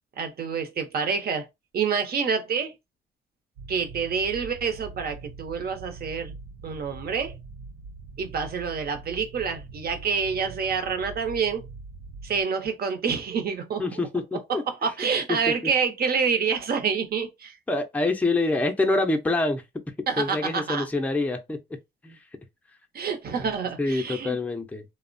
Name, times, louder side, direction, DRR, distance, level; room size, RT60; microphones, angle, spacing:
voice 1, 0.2-1.4 1.7-2.7 3.7-6.3 6.6-7.3 8.2-11.6 12.2-13.9 14.8-17.6 20.1-20.9 22.9-24.4, right 6 dB, 50° right, 0.8 m, -27 dB
sound 1, 3.6-12.4, right 3 dB, 85° right, 0.4 m, -43 dB
voice 2, 13.8-14.9 15.3-15.7 17.7-19.6 20.2-21.6 22.0-22.2 23.4-23.5 23.8-24.8, left 2 dB, 5° left, 0.5 m, -26 dB
2.9 x 2.1 x 2.5 m
cardioid pair, 90°, 20 cm